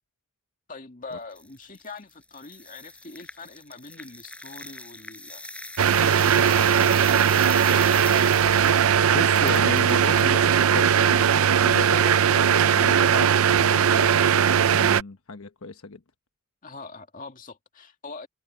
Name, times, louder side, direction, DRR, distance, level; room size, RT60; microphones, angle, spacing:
voice 1, 0.7-5.5 5.9-8.4 16.6-18.3, left 3 dB, 40° left, 2.2 m, -43 dB
sound 1, 1.1-10.2, left 2 dB, 5° left, 6.9 m, -41 dB
sound 2, 5.8-15.0, right 8 dB, 70° right, 0.5 m, -19 dB
voice 2, 9.1-16.0, left 3 dB, 75° left, 1.2 m, -35 dB
head